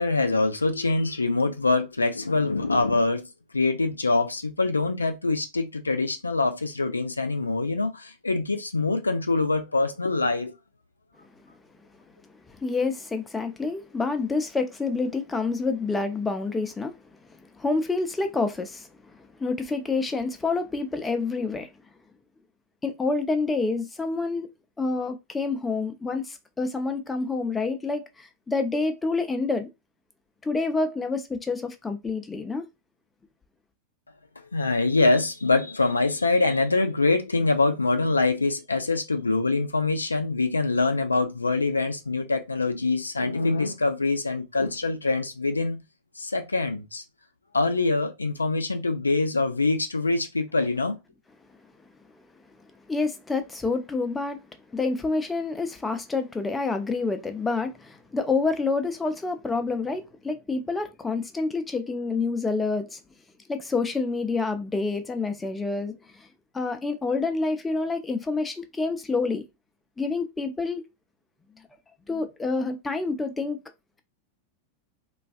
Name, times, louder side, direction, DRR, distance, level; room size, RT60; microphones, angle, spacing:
voice 1, 0.0-3.3 3.5-10.6 34.5-45.8 46.2-47.0 47.5-51.0, left 3 dB, 80° left, 0.3 m, -24 dB
voice 2, 12.6-17.0 17.6-18.9 19.2-21.7 22.8-24.5 24.8-29.7 30.4-32.7 52.9-54.4 54.7-63.0 63.5-66.3 66.5-69.4 70.0-70.8 72.1-73.6, left 3 dB, 10° left, 0.4 m, -28 dB
2.3 x 2.3 x 2.4 m
figure-of-eight pair, 90°, 0 cm